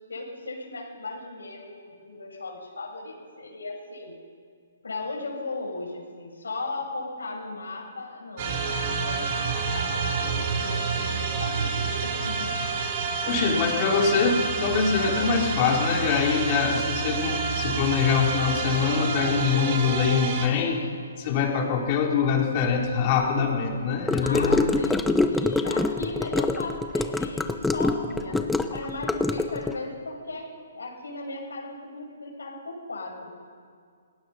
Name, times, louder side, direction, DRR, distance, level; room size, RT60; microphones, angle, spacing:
voice 1, 0.1-4.2 4.8-12.5 24.2-33.3, left 3 dB, 75° left, -1 dB, 6.8 m, -37 dB
sound 1, 8.4-20.5, right 5 dB, 40° right, 3.1 m, -28 dB
voice 2, 13.2-20.8 21.2-24.6, left 6 dB, 35° left, 0 dB, 4.2 m, -24 dB
Gurgling / Car passing by / Sink (filling or washing), 24.1-29.8, left 3 dB, 5° left, 1.0 m, -25 dB
28.0 x 19.5 x 5.8 m, 2.1 s
figure-of-eight pair, 130°, 0 cm